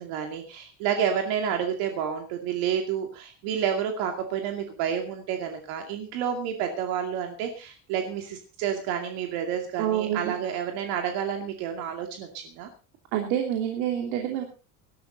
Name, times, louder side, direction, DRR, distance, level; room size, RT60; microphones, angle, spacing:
voice 1, 0.0-12.7, right 8 dB, 70° right, 4 dB, 2.5 m, -30 dB
voice 2, 9.8-10.3 13.1-14.4, right 10 dB, 90° right, 3 dB, 3.0 m, -27 dB
19.0 x 12.5 x 4.0 m, 0.34 s
cardioid pair, 175°, 37 cm